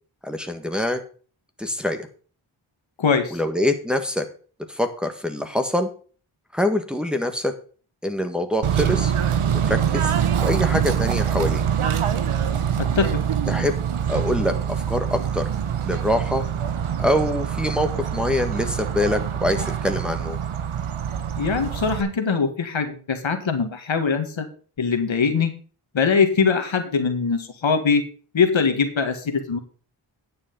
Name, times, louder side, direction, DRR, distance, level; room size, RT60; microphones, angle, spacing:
voice 1, 0.2-1.0 1.6-2.1 3.3-4.2 4.7-5.9 6.5-7.5 8.0-9.1 9.6-10.1 10.4-11.6 13.5-13.8 14.1-15.5 15.8-16.4 17.0-20.4, left 1 dB, ahead, 5 dB, 1.5 m, -24 dB
voice 2, 3.0-3.4 12.8-13.2 21.4-24.5 24.8-25.5 25.9-28.0 28.3-29.6, left 5 dB, 65° left, 6 dB, 1.8 m, -22 dB
Bird / Train, 8.6-22.0, right 8 dB, 80° right, 1.1 m, -24 dB
9.9 x 6.8 x 5.3 m, 0.40 s
cardioid pair, 50°, 49 cm